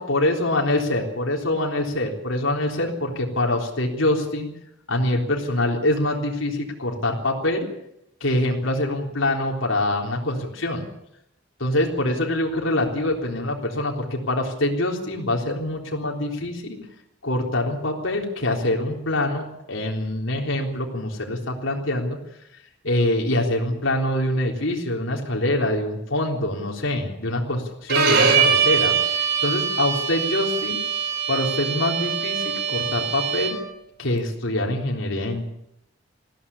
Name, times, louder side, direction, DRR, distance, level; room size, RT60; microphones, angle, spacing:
voice 1, 0.0-4.5 4.9-7.7 8.2-10.9 11.6-16.8 17.2-22.2 22.8-30.8 31.3-33.6 34.0-35.4, left 1 dB, 85° left, 0 dB, 3.8 m, -24 dB
Bowed string instrument, 27.9-33.7, right 6 dB, 55° right, 3.9 m, -23 dB
21.0 x 16.0 x 8.6 m, 0.81 s
head